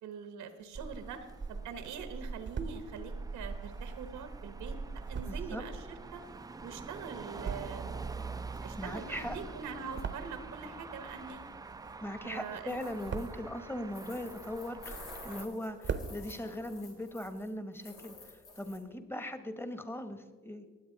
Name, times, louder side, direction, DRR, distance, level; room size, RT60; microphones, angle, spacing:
voice 1, 0.0-6.2 6.6-7.9 8.6-11.4 12.2-12.8, right 6 dB, 90° right, 9 dB, 1.2 m, -43 dB
sound 1, 0.6-1.6 2.1-2.8 3.5-6.8 7.2-8.0 8.3-10.7 11.0-12.2 12.6-13.5 14.1-15.1 15.4-15.5 15.7-16.1, right 6 dB, 40° right, 0.8 m, -42 dB
Motor vehicle (road), 0.8-15.4, right 4 dB, 15° right, 0.4 m, -44 dB
voice 2, 5.2-5.6 8.8-9.4 12.0-20.6, left 1 dB, 10° left, 9 dB, 1.1 m, -40 dB
sound 2, 12.7-13.4 13.9-17.5 17.7-18.8, left 3 dB, 85° left, 3.2 m, -51 dB
19.0 x 7.9 x 3.9 m, 1.4 s
cardioid pair, 90°, 30 cm